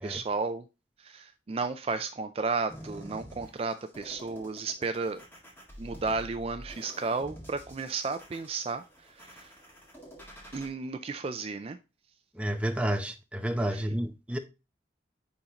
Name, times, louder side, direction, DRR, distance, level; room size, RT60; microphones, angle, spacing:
voice 1, 0.0-0.6 1.0-5.2 5.8-8.8 9.1-9.5 10.5-11.8 13.7-13.8, right 4 dB, 35° right, 0.4 m, -33 dB
sound 1, 2.7-10.7, equal, 10° left, 1.9 m, -48 dB
voice 2, 12.4-14.4, right 1 dB, 5° right, 0.7 m, -30 dB
9.7 x 3.8 x 2.9 m
head